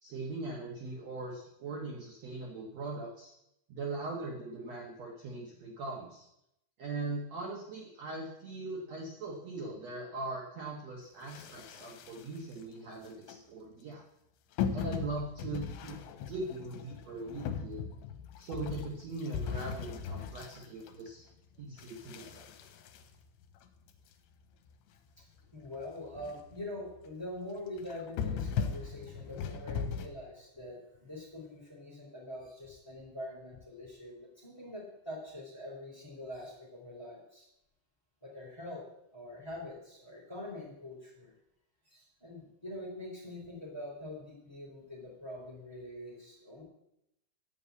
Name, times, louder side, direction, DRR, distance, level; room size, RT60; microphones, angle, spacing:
voice 1, 0.0-3.3 3.7-6.3 6.8-14.0 14.7-16.0 16.3-17.8 18.4-21.2 21.6-22.5, right 2 dB, 75° right, -2 dB, 1.5 m, -40 dB
sound 1, 11.3-12.5 13.0-13.4 14.6-21.3 21.8-23.9 24.4-24.5 24.7-24.8 25.2-25.3 25.7-25.8 26.1-26.5 26.9-27.1 27.8-30.1, left 7 dB, 80° left, 3.0 m, -38 dB
voice 2, 25.5-37.5 38.2-38.8 39.1-41.3 41.9-46.6, left 1 dB, 5° left, -2 dB, 2.5 m, -44 dB
12.0 x 5.5 x 8.3 m, 0.81 s
omnidirectional pair, 5.2 m